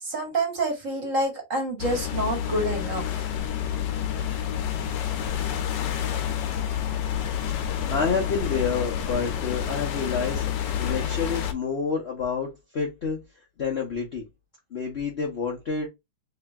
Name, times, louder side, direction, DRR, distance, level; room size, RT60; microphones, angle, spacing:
voice 1, 0.0-3.2, right 2 dB, 50° right, 1.1 m, -27 dB
sound 1, 1.8-11.5, left 9 dB, 70° left, 1.1 m, -29 dB
voice 2, 7.5-13.2 13.6-14.3 14.7-15.9, left 5 dB, 85° left, 0.5 m, -29 dB
3.2 x 2.9 x 3.4 m
omnidirectional pair, 2.3 m